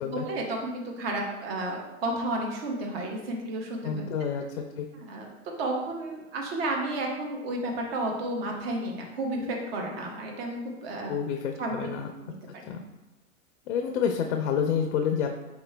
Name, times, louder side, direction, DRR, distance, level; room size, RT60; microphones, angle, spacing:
voice 1, 0.1-4.1 4.9-11.2 11.6-11.9 12.2-12.6, right 1 dB, 45° right, 1 dB, 1.0 m, -32 dB
voice 2, 3.8-4.4 4.8-4.9 11.1-12.1 12.7-12.8 13.7-15.4, left 7 dB, 60° left, 4 dB, 0.5 m, -28 dB
4.7 x 3.0 x 3.3 m, 1.0 s
supercardioid pair, 155°, 41 cm